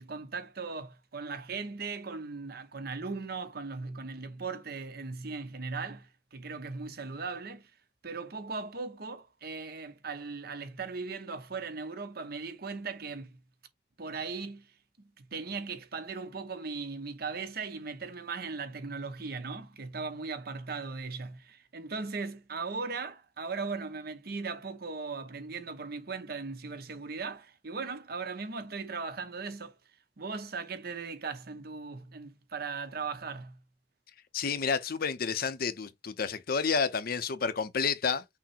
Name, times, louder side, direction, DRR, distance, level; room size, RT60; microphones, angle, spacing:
voice 1, 0.0-7.7 8.0-13.4 14.0-14.7 15.0-29.8 30.2-33.6, right 4 dB, 60° right, 0.9 m, -38 dB
voice 2, 34.3-38.2, left 5 dB, 55° left, 0.6 m, -30 dB
6.0 x 2.1 x 4.2 m
head